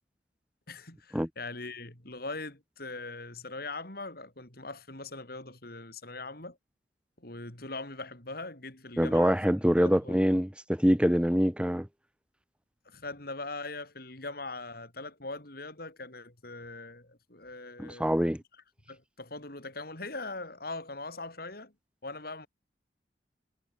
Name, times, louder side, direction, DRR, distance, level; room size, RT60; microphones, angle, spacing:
voice 1, 0.7-6.6 7.2-9.4 9.8-10.2 12.9-18.3 18.9-21.7 22.0-22.5, left 3 dB, 55° left, 5.6 m, -41 dB
voice 2, 9.0-11.9 17.8-18.4, equal, 5° right, 1.4 m, -25 dB
head